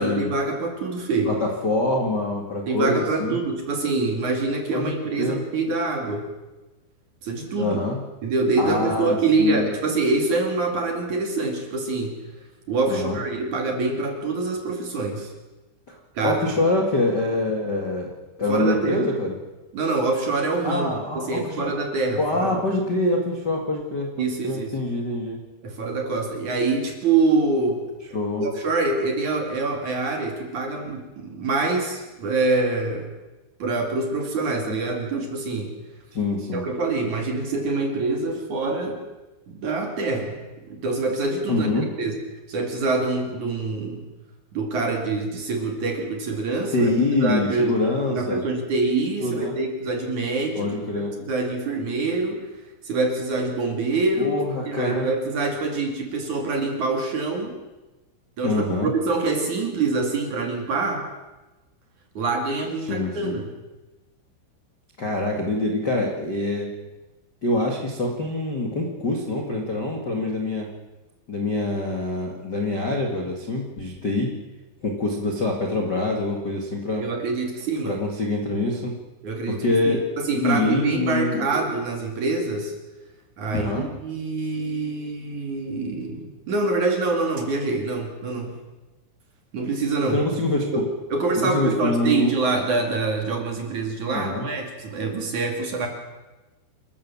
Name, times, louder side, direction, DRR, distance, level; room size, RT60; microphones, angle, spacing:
voice 1, 0.0-1.4 2.7-6.3 7.2-7.8 8.2-12.2 12.7-15.3 16.1-16.6 18.5-19.1 19.7-22.6 24.2-24.8 25.6-33.1 33.6-35.7 36.5-39.0 39.5-41.7 42.0-42.2 42.5-44.0 44.5-46.9 47.2-52.5 52.8-54.4 54.7-57.6 58.4-61.1 62.1-63.5 77.0-78.0 79.2-82.7 83.4-88.5 89.5-90.2 90.7-95.9, right 3 dB, 45° right, 3 dB, 3.1 m, -25 dB
voice 2, 1.3-3.4 4.7-4.9 5.2-5.4 7.6-8.0 8.6-9.7 12.9-13.2 15.9-16.0 16.2-18.1 18.4-19.3 20.6-21.7 22.2-25.4 28.1-28.5 36.1-36.7 41.5-41.9 46.7-48.4 49.2-49.5 50.5-51.1 54.2-55.1 58.4-58.9 62.8-63.4 65.0-66.7 67.4-70.7 71.3-74.3 74.8-77.0 77.8-78.9 79.5-80.0 80.3-81.6 83.5-83.9 90.1-90.7 91.3-92.3 94.1-94.5, left 2 dB, 60° left, 1 dB, 1.0 m, -25 dB
28.5 x 14.0 x 7.2 m, 1.1 s
omnidirectional pair, 5.8 m